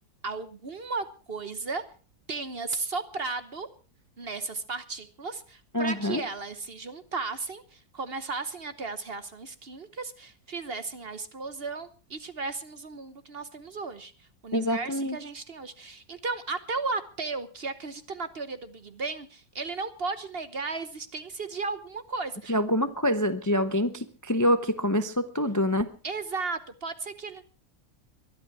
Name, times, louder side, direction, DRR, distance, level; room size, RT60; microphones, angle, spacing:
voice 1, 0.2-1.8 2.3-3.7 4.2-22.5 26.0-27.4, right 4 dB, 40° right, 12 dB, 1.1 m, -35 dB
voice 2, 5.7-6.2 14.5-15.2 22.5-25.9, equal, 15° left, 10 dB, 0.6 m, -26 dB
22.5 x 11.5 x 4.7 m, 0.37 s
omnidirectional pair, 1.7 m